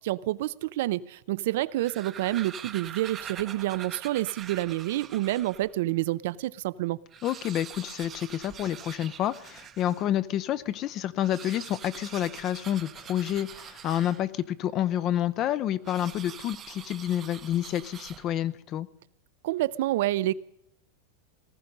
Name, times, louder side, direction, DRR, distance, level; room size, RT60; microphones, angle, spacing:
voice 1, 0.0-7.0 19.4-20.3, right 16 dB, 60° right, 19 dB, 0.6 m, -28 dB
sound 1, 1.6-5.7 6.3-6.4 6.6-6.7 7.0-10.1 11.1-14.5 15.8-18.5, right 9 dB, 20° right, 0.7 m, -44 dB
voice 2, 7.2-18.9, left 11 dB, 30° left, 17 dB, 0.6 m, -29 dB
19.0 x 14.0 x 5.4 m, 0.79 s
supercardioid pair, 160°, 0 cm